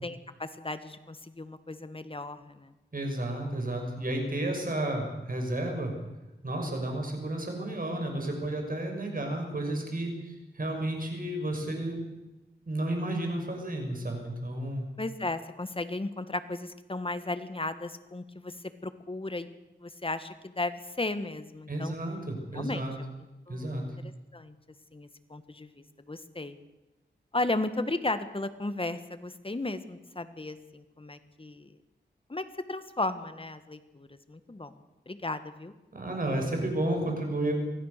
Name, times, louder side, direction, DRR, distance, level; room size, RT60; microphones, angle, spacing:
voice 1, 0.0-2.7 15.0-18.5 18.8-19.5 19.8-21.9 22.5-22.8 23.5-23.7 24.3-24.5 24.9-26.6 27.3-31.7 32.3-34.7 35.1-35.7, left 2 dB, 30° left, 11 dB, 1.7 m, -35 dB
voice 2, 2.9-5.9 6.4-12.0 12.7-14.9 21.7-23.0 23.5-23.8 35.9-37.5, right 1 dB, 50° right, 3 dB, 6.2 m, -32 dB
24.0 x 16.0 x 6.8 m, 1.0 s
wide cardioid pair, 60°, 18 cm